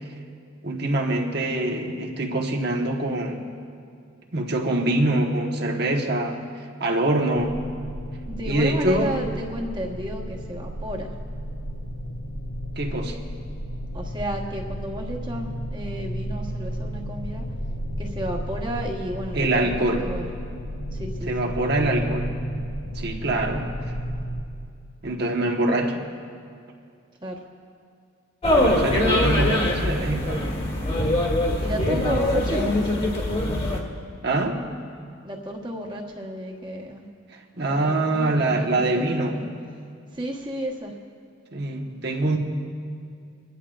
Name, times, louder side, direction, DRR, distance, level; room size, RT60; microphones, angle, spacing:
voice 1, 0.6-3.4 4.3-6.4 6.8-7.6 8.5-9.2 12.8-13.2 19.3-20.1 21.3-22.3 22.9-23.7 25.0-26.1 28.5-30.5 34.2-34.6 37.6-39.4 41.5-42.4, right 2 dB, 55° right, 1 dB, 1.2 m, -24 dB
sound 1, 7.4-24.4, equal, 75° left, 1.1 m, -33 dB
voice 2, 8.4-11.1 13.9-17.4 18.0-20.3 20.9-22.1 27.2-27.4 31.6-33.1 35.2-37.1 37.7-39.5 40.1-40.9, right 1 dB, 25° right, 0 dB, 1.3 m, -33 dB
sound 2, 28.4-33.8, left 1 dB, 30° left, 1.6 m, -23 dB
29.5 x 11.0 x 2.5 m, 2.3 s
head